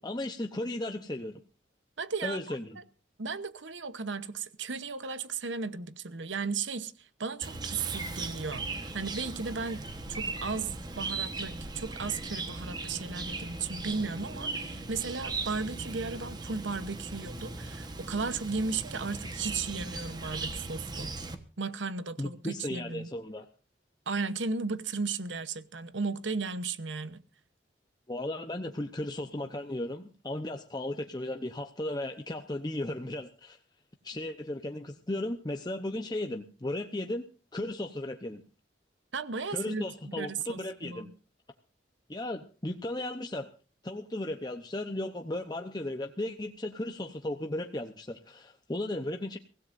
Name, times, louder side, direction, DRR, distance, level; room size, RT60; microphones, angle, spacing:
voice 1, 0.0-1.4 2.2-2.8 22.2-23.5 28.1-33.6 34.0-37.2 37.5-38.4 39.5-41.1 42.1-43.5 43.8-49.4, left 1 dB, 20° left, 0.8 m, -35 dB
voice 2, 2.0-2.6 3.2-21.1 21.6-23.1 24.1-27.2 39.1-41.1, right 4 dB, 80° right, 1.0 m, -35 dB
Chirp tweet, 7.4-21.3, right 3 dB, 20° right, 1.2 m, -38 dB
23.5 x 16.5 x 2.6 m
head